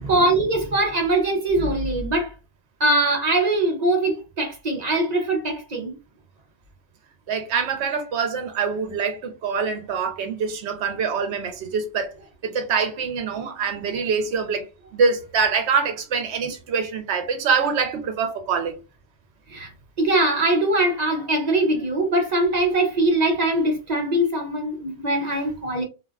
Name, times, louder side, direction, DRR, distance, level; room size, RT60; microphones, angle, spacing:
voice 1, 0.1-2.3 2.8-6.0 19.5-19.7 20.0-25.8, right 2 dB, 45° right, 0.6 m, -22 dB
voice 2, 7.3-12.1 12.4-14.7 14.9-18.7, right 5 dB, 75° right, 0.9 m, -24 dB
2.5 x 2.3 x 2.2 m
omnidirectional pair, 1.1 m